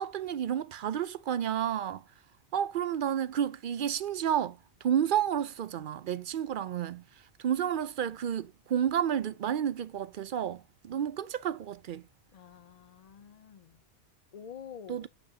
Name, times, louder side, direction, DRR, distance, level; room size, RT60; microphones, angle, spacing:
voice 1, 0.0-2.0 2.5-4.6 4.8-7.0 7.4-12.0 14.9-15.1, right 9 dB, 60° right, 0.6 m, -31 dB
voice 2, 12.3-13.8 14.3-15.1, left 8 dB, 50° left, 0.4 m, -48 dB
8.1 x 6.8 x 2.7 m
omnidirectional pair, 1.2 m